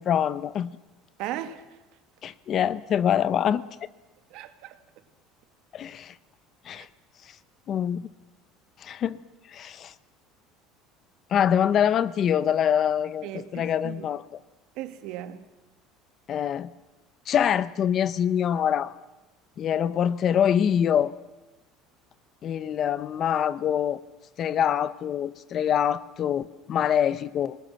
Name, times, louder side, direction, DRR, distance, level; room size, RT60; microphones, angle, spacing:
voice 1, 0.1-0.7 2.2-3.6 5.7-6.1 6.6-6.9 7.7-8.1 8.8-9.2 9.5-9.9 11.3-13.3 13.5-14.2 16.3-16.7 17.3-18.9 19.6-21.1 22.4-24.0 24.4-27.6, left 9 dB, 35° left, 0.7 m, -24 dB
voice 2, 1.2-1.6 4.3-4.8 6.7-6.9 13.2-14.1 14.8-15.4 18.5-18.6, right 12 dB, 60° right, 2.0 m, -37 dB
25.0 x 20.5 x 7.6 m
cardioid pair, 160°, 0 cm